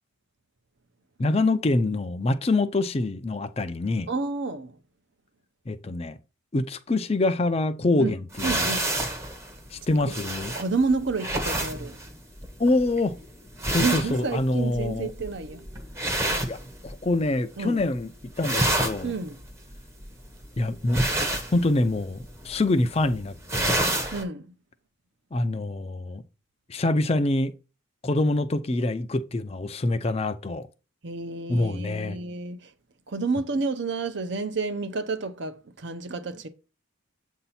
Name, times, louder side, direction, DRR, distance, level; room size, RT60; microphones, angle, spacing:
voice 1, 1.2-4.1 5.7-6.2 6.5-8.7 9.7-10.5 12.6-13.2 13.7-15.1 16.5-16.6 16.8-18.1 18.4-19.1 20.6-21.0 21.5-23.8 25.3-26.2 26.7-27.5 28.0-30.7 31.5-32.2, left 2 dB, 30° left, 0.4 m, -25 dB
voice 2, 4.1-4.8 8.0-8.1 8.4-8.9 10.0-10.2 10.6-12.0 13.8-15.6 17.6-17.8 19.0-19.4 24.1-24.5 31.0-32.7 33.1-36.5, right 3 dB, 55° right, 0.7 m, -30 dB
sound 1, 8.3-17.3 17.6-18.0 18.3-24.2, right 1 dB, 15° right, 0.8 m, -29 dB
7.7 x 2.7 x 5.7 m
head